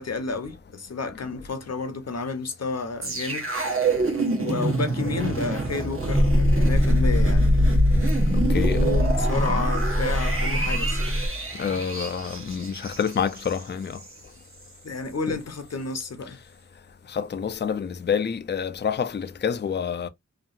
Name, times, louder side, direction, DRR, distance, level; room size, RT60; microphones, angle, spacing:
voice 1, 0.0-3.5 4.4-7.6 8.5-11.2 14.8-16.4, left 4 dB, 55° left, 0.8 m, -31 dB
sound 1, 3.0-14.2 14.5-14.7, equal, 45° right, 1.1 m, -26 dB
sound 2, 6.1-11.3, equal, 5° right, 0.7 m, -22 dB
voice 2, 8.5-8.8 11.6-14.0 15.3-15.4 17.1-20.1, left 7 dB, 35° left, 0.4 m, -27 dB
2.8 x 2.5 x 2.4 m
wide cardioid pair, 60°, 31 cm